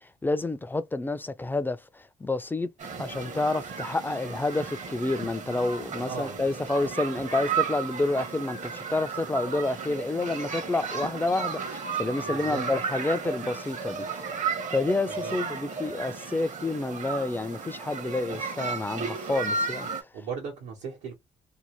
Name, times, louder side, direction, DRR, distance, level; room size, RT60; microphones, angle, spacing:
voice 1, 0.0-2.7 3.0-14.3 14.7-20.1, left 2 dB, 10° left, 0.4 m, -29 dB
sound 1, 2.8-20.0, right 5 dB, 50° right, 0.8 m, -34 dB
voice 2, 6.0-6.6 12.2-12.7 15.1-15.4 20.1-21.1, right 5 dB, 90° right, 1.0 m, -37 dB
2.7 x 2.1 x 2.9 m
supercardioid pair, 75°, 17 cm